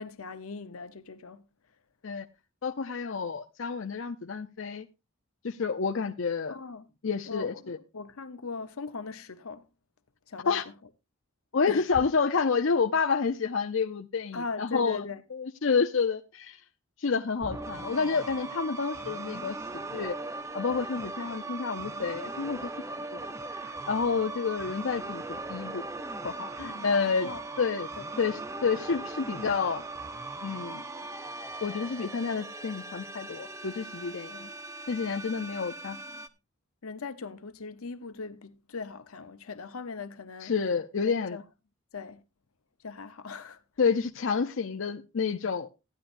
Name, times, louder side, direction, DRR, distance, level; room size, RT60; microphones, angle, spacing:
voice 1, 0.0-1.4 6.5-6.8 7.3-9.7 10.3-10.5 11.7-11.9 14.3-15.2 26.6-26.9 27.2-27.4 28.0-28.1 34.3-34.5 35.0-35.3 36.1-36.2 36.8-40.5 41.0-41.4 41.9-42.2 42.8-43.6, left 4 dB, 90° left, 0.9 m, -40 dB
voice 2, 2.6-4.9 5.4-6.6 7.0-7.8 10.5-10.6 11.5-15.1 15.3-16.6 17.0-19.6 19.9-20.2 20.5-22.7 23.1-25.8 26.2-27.3 27.6-27.9 28.2-29.8 30.4-30.8 31.6-34.3 34.9-36.0 40.4-41.4 43.8-45.7, left 5 dB, 65° left, 0.6 m, -29 dB
sound 1, 17.4-36.3, right 2 dB, 15° right, 0.4 m, -39 dB
15.0 x 10.0 x 2.6 m
head